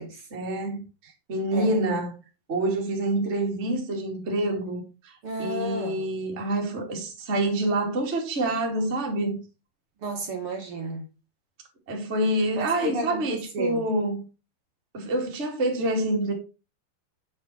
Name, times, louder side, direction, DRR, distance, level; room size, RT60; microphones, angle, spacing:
voice 1, 0.3-2.1 2.5-5.1 5.4-9.4 11.9-14.2 14.9-16.3, right 1 dB, 25° right, 1.6 m, -27 dB
voice 2, 5.2-6.0 10.0-11.0 12.5-13.8, right 2 dB, 50° right, 1.6 m, -32 dB
8.0 x 6.4 x 4.4 m
omnidirectional pair, 5.2 m